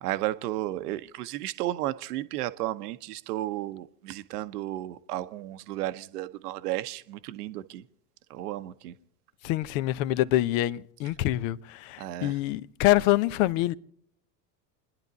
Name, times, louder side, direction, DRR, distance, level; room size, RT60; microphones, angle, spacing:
voice 1, 0.0-7.8 8.3-8.9 12.0-12.3, right 15 dB, 70° right, 1.0 m, -33 dB
voice 2, 9.4-13.7, left 15 dB, 55° left, 0.8 m, -25 dB
28.5 x 10.5 x 4.1 m
hypercardioid pair, 85°, 49 cm